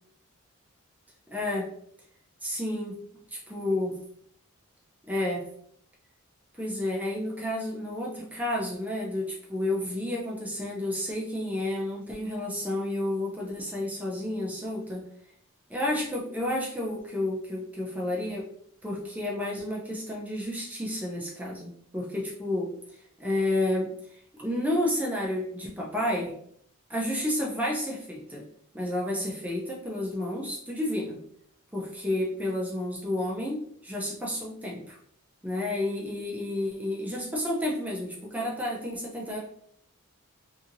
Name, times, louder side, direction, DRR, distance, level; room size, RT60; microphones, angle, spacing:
voice 1, 1.3-1.7 2.4-3.0 3.3-4.0 5.1-5.5 6.5-15.0 15.7-18.5 18.8-22.7 23.2-26.3 26.9-28.4 28.7-31.2 31.7-35.0 35.4-39.4, left 1 dB, 5° right, -3 dB, 0.5 m, -31 dB
2.8 x 2.7 x 2.5 m, 0.65 s
head